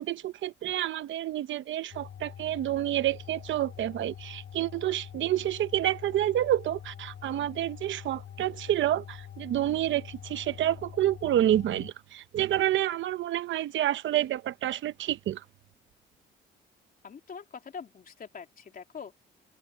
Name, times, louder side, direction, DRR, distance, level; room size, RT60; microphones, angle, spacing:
voice 1, 0.0-15.4, right 12 dB, 75° right, 0.9 m, -29 dB
sound 1, 1.9-11.9, left 9 dB, 60° left, 4.9 m, -45 dB
voice 2, 17.0-19.1, left 6 dB, 45° left, 3.1 m, -43 dB
open air
cardioid pair, 90°, 20 cm